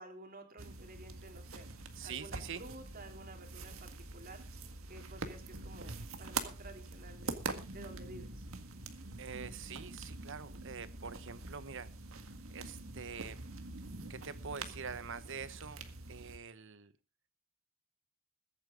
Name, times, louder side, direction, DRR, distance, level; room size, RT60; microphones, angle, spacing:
voice 1, 0.0-4.4 4.9-7.4 7.7-8.5, right 2 dB, 45° right, 4 dB, 3.3 m, -52 dB
sound 1, 0.6-16.4, right 3 dB, 80° right, 1.8 m, -45 dB
voice 2, 2.0-2.6 9.2-11.9 12.5-13.5 14.1-15.8 16.1-16.9, right 6 dB, 65° right, 14 dB, 1.1 m, -45 dB
22.0 x 8.9 x 3.8 m, 0.31 s
head